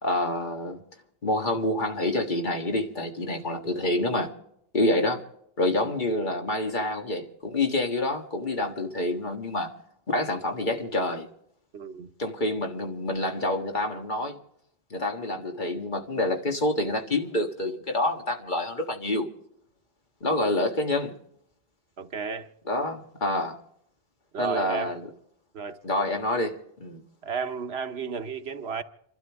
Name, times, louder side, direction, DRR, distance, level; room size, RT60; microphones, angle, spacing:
voice 1, 0.0-0.8 1.2-4.3 4.7-5.2 5.6-9.7 10.1-11.3 12.2-14.4 14.9-19.3 20.2-21.2 22.7-23.6 24.4-25.0 25.8-27.0, left 1 dB, 50° left, 1.8 m, -27 dB
voice 2, 11.7-12.1 22.0-22.5 24.3-24.9 25.5-25.8 27.2-28.8, right 6 dB, 90° right, 1.3 m, -32 dB
28.5 x 12.5 x 3.6 m
omnidirectional pair, 1.0 m